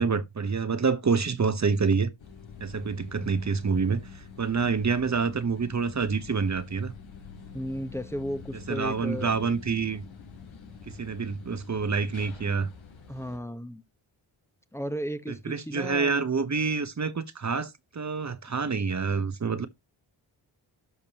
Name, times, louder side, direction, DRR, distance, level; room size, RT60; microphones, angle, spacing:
voice 1, 0.0-2.1 2.6-6.9 8.7-10.0 10.9-12.7 15.4-19.7, right 5 dB, 35° right, 1.0 m, -27 dB
sound 1, 2.2-13.4, left 5 dB, 75° left, 1.9 m, -46 dB
voice 2, 7.5-9.3 13.1-13.8 14.7-16.2, equal, 5° left, 1.1 m, -34 dB
12.5 x 5.3 x 2.9 m
cardioid pair, 55°, 47 cm